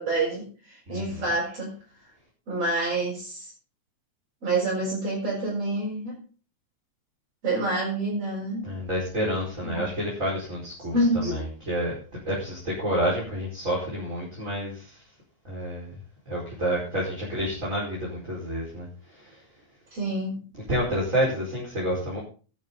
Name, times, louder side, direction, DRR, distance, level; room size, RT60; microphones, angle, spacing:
voice 1, 0.0-1.8 2.5-3.5 4.4-6.2 7.4-8.6 9.7-9.8 10.9-11.4 19.9-20.5, right 2 dB, 50° right, -7 dB, 7.0 m, -27 dB
voice 2, 0.9-1.2 8.6-11.9 12.2-15.0 15.4-15.9 16.3-19.4 20.7-22.2, equal, 25° right, -5 dB, 5.4 m, -29 dB
13.0 x 12.5 x 4.0 m, 0.38 s
omnidirectional pair, 3.5 m